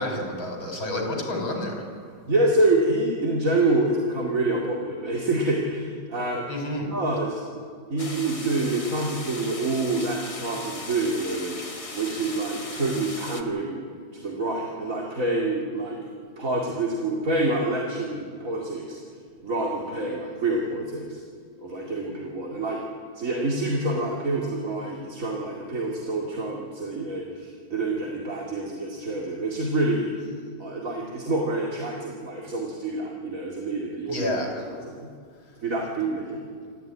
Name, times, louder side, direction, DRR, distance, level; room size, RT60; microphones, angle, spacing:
voice 1, 0.0-1.7 6.5-6.9 34.1-34.6, left 1 dB, 70° left, 2 dB, 5.3 m, -29 dB
voice 2, 2.3-6.4 6.9-7.4 7.9-11.6 11.9-13.8 14.1-16.0 16.4-19.0 19.4-21.2 21.6-22.8 23.1-30.2 30.6-34.2 34.7-35.1 35.6-36.4, right 2 dB, 40° right, -2 dB, 2.7 m, -27 dB
sound 1, 8.0-13.4, left 2 dB, 20° left, 1.0 m, -38 dB
26.5 x 14.0 x 9.5 m, 2.1 s
omnidirectional pair, 2.3 m